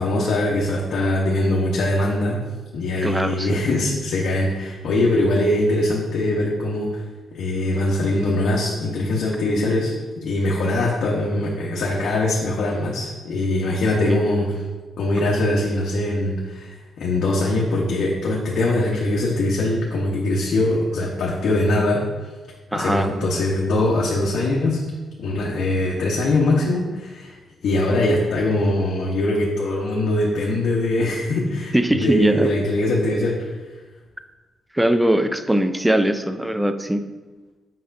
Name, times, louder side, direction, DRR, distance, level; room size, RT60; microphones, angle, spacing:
voice 1, 0.0-2.4 2.7-7.0 7.3-14.5 15.0-22.0 22.7-24.8 25.2-27.4 27.6-33.5, left 1 dB, 75° left, -4 dB, 1.0 m, -22 dB
voice 2, 3.0-3.6 14.1-14.2 22.7-23.1 31.7-32.5 34.7-37.0, right 1 dB, 5° right, 9 dB, 0.4 m, -20 dB
7.7 x 5.5 x 2.6 m, 1.3 s
cardioid pair, 125°, 0 cm